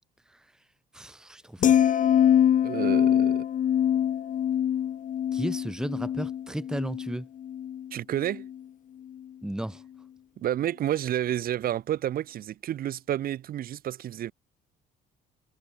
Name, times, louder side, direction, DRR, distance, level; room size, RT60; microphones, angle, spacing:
voice 1, 0.9-1.8 5.3-7.3 9.4-9.8, right 1 dB, 5° right, 1.3 m, -34 dB
sound 1, 1.6-7.9 8.2-8.6, left 10 dB, 50° left, 1.6 m, -24 dB
voice 2, 2.6-3.5 7.9-8.5 10.4-14.3, right 11 dB, 60° right, 2.2 m, -30 dB
cardioid pair, 110°, 17 cm